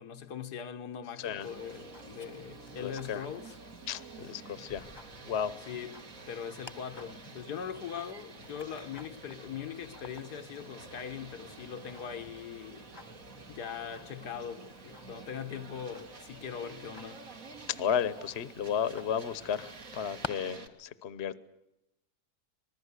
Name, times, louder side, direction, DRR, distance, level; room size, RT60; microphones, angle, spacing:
voice 1, 0.0-3.6 5.7-12.9 13.5-17.3, left 8 dB, 80° left, 1.7 m, -41 dB
sound 1, 1.2-20.7, right 4 dB, 55° right, 2.3 m, -50 dB
Tick-tock, 1.4-20.3, left 3 dB, 20° left, 1.1 m, -52 dB
voice 2, 2.8-3.2 3.9-4.9 5.2-5.5 17.8-21.4, left 8 dB, 45° left, 1.2 m, -33 dB
26.0 x 20.5 x 8.3 m
omnidirectional pair, 1.7 m